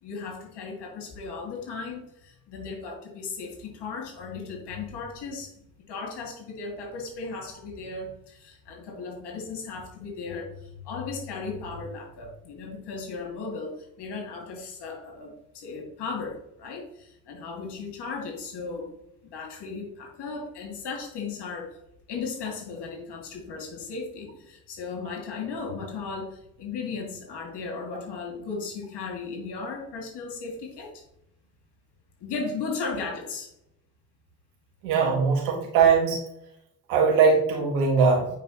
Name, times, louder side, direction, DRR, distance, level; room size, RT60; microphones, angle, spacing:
voice 1, 0.0-18.9 19.2-21.8 22.1-31.0 32.2-33.5, left 4 dB, 65° left, 1 dB, 2.5 m, -36 dB
voice 2, 34.8-36.2 36.9-38.3, right 5 dB, 85° right, 0 dB, 2.0 m, -20 dB
9.1 x 4.6 x 3.1 m, 0.77 s
hypercardioid pair, 50°, 44 cm